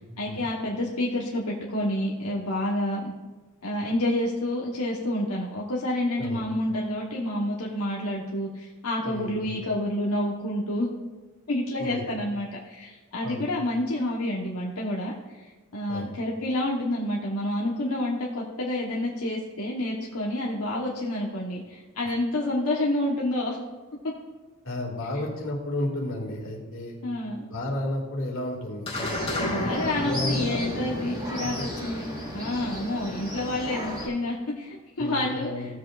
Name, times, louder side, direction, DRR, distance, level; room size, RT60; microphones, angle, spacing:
voice 1, 0.2-3.1 3.6-10.9 11.5-23.6 27.0-27.4 29.4-32.0 32.3-35.8, left 1 dB, 90° left, -3 dB, 1.2 m, -29 dB
voice 2, 9.0-9.5 11.8-12.1 13.2-13.5 15.9-16.1 24.6-27.0 27.5-30.8 31.4-31.9 35.0-35.8, left 1 dB, 65° left, -1 dB, 2.3 m, -32 dB
sound 1, 28.9-33.5, left 1 dB, 25° left, 2.0 m, -33 dB
sound 2, 28.9-34.1, equal, 15° right, 2.7 m, -35 dB
16.0 x 7.6 x 2.5 m, 1.3 s
head